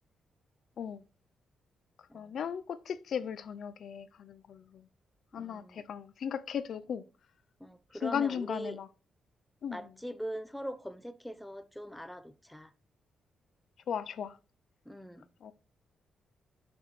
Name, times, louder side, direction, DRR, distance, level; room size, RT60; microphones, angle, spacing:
voice 1, 2.1-4.8 5.3-7.0 8.0-8.9 9.6-9.8 13.9-14.3 15.4-15.5, left 8 dB, 60° left, 0.5 m, -36 dB
voice 2, 5.3-5.8 7.6-8.8 9.7-12.7 14.9-15.3, equal, 5° left, 0.7 m, -42 dB
11.0 x 5.9 x 3.1 m
cardioid pair, 145°, 0 cm